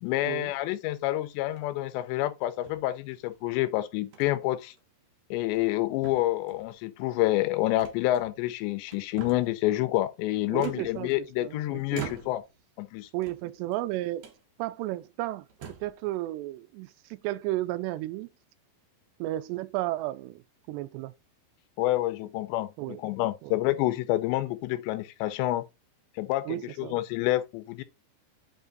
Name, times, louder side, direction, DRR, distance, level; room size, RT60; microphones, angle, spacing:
voice 1, 0.0-4.7 5.3-12.4 12.8-13.1 21.8-25.7 26.2-27.8, left 16 dB, 90° left, 2.9 m, -28 dB
sound 1, 1.4-1.9 2.7-3.4 4.1-4.4 4.8-4.9 5.4-5.8 6.0-6.7 7.8-8.5 8.9-9.6 10.6-11.4 11.9-12.6 13.1-13.8 14.2-14.4 15.0-15.1 15.5-16.0, right 7 dB, 65° right, 1.7 m, -45 dB
voice 2, 10.5-11.6 11.9-12.1 13.1-14.3 14.6-15.5 15.8-18.3 19.2-20.4 20.7-21.1 22.8-23.0 23.4-23.6 26.5-27.0, right 16 dB, 85° right, 2.6 m, -33 dB
8.2 x 3.4 x 3.8 m
omnidirectional pair, 5.0 m